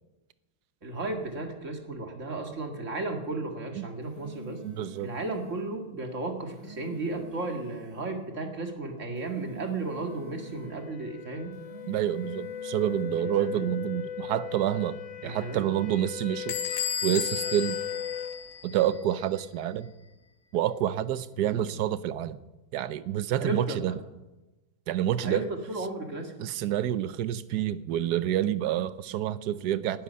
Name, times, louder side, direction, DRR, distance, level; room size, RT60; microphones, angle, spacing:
voice 1, 0.8-4.6 5.0-11.5 13.1-13.7 15.2-15.7 21.4-21.6 23.4-23.8 25.2-26.3, right 2 dB, 40° right, 3 dB, 2.3 m, -34 dB
sound 1, 3.8-5.6 6.3-8.1 9.0-10.8 11.4-13.1, equal, 15° right, 5.1 m, -48 dB
voice 2, 4.6-5.1 11.9-16.6 17.0-17.8 18.6-19.9 20.5-22.4 22.7-24.0 24.9-25.4 26.4-30.0, right 11 dB, 65° right, 14 dB, 1.1 m, -28 dB
sound 2, 8.5-18.4, left 9 dB, 65° left, 0.7 m, -39 dB
Bell / Squeak, 16.5-19.0, left 8 dB, 85° left, 2.0 m, -33 dB
19.5 x 12.0 x 5.5 m, 1.1 s
omnidirectional pair, 2.2 m